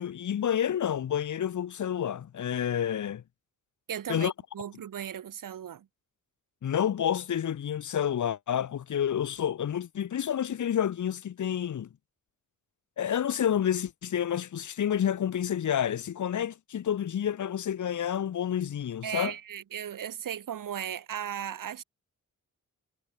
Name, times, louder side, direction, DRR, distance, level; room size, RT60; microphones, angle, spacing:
voice 1, 0.0-3.2 4.1-4.3 6.6-11.9 13.0-19.3, left 9 dB, 65° left, 1.0 m, -29 dB
voice 2, 3.9-5.9 19.0-21.8, right 9 dB, 85° right, 1.8 m, -36 dB
wide cardioid pair, 110°, 32 cm